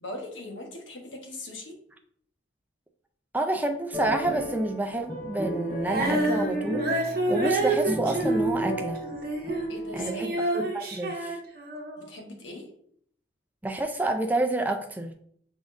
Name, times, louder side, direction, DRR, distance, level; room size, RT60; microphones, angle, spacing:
voice 1, 0.0-1.8 9.7-10.4 12.0-12.7, left 2 dB, 85° left, 2 dB, 1.1 m, -40 dB
voice 2, 3.3-6.9 7.3-9.0 9.9-11.4 13.6-15.1, right 2 dB, 10° right, 4 dB, 0.4 m, -29 dB
sound 1, 3.9-10.3, right 1 dB, 15° left, 1.8 m, -33 dB
Female singing, 5.8-9.7 9.9-12.1, right 2 dB, 50° right, 0.8 m, -29 dB
5.4 x 3.7 x 2.6 m, 0.64 s
head